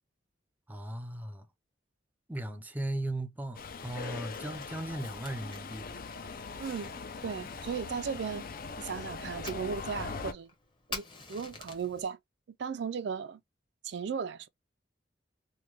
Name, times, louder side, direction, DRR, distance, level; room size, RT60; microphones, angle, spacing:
voice 1, 0.7-1.5 2.3-6.0, right 1 dB, 10° right, 0.5 m, -37 dB
Subway metro underground, 3.5-10.3, left 4 dB, 50° left, 0.5 m, -41 dB
Fire, 3.6-12.0, left 4 dB, 25° left, 1.0 m, -49 dB
voice 2, 6.6-6.9 7.2-8.4 8.8-10.5 10.9-11.0 11.3-12.2 12.6-13.4 13.8-14.5, right 6 dB, 65° right, 0.4 m, -36 dB
3.1 x 2.2 x 3.1 m
head